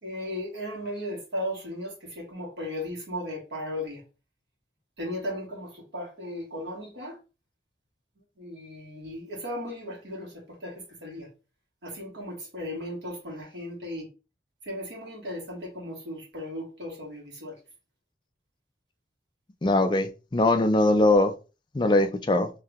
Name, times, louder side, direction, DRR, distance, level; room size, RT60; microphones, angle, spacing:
voice 1, 0.0-4.0 5.0-7.2 8.4-11.3 11.8-14.1 14.6-17.6, left 1 dB, 90° right, 1.7 m, -36 dB
voice 2, 19.6-21.3 21.7-22.5, left 2 dB, 25° left, 0.4 m, -21 dB
3.2 x 2.8 x 3.5 m
head